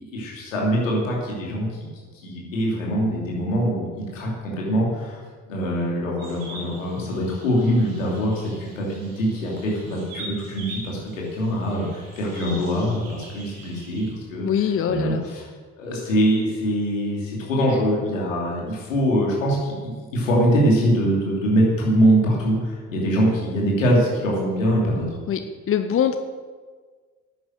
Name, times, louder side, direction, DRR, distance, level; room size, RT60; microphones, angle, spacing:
voice 1, 0.0-1.9 2.2-5.2 5.5-14.4 14.9-15.4 15.8-25.0, equal, 75° left, -3 dB, 2.9 m, -23 dB
sound 1, 6.2-14.1, right 2 dB, 65° right, 3.4 m, -42 dB
voice 2, 14.4-15.3 25.3-25.4 25.7-26.2, left 8 dB, 35° left, 8 dB, 0.8 m, -22 dB
11.0 x 9.3 x 6.5 m, 1.5 s
figure-of-eight pair, 45°, 39 cm